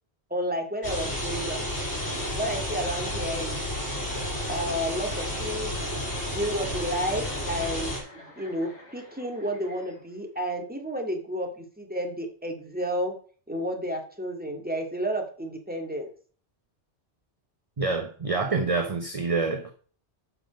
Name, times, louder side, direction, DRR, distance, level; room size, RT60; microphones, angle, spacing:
voice 1, 0.3-1.6 2.3-3.6 4.5-5.7 6.3-7.9 8.4-13.1 13.5-16.1, equal, 10° right, 2 dB, 2.1 m, -31 dB
sound 1, 0.8-8.0, left 1 dB, 65° left, 6.5 m, -31 dB
Chuckle chortle, 6.3-10.4, left 1 dB, 35° left, 3.8 m, -48 dB
voice 2, 17.8-19.7, right 3 dB, 35° right, 7 dB, 0.9 m, -27 dB
12.0 x 5.9 x 5.2 m, 0.43 s
omnidirectional pair, 1.2 m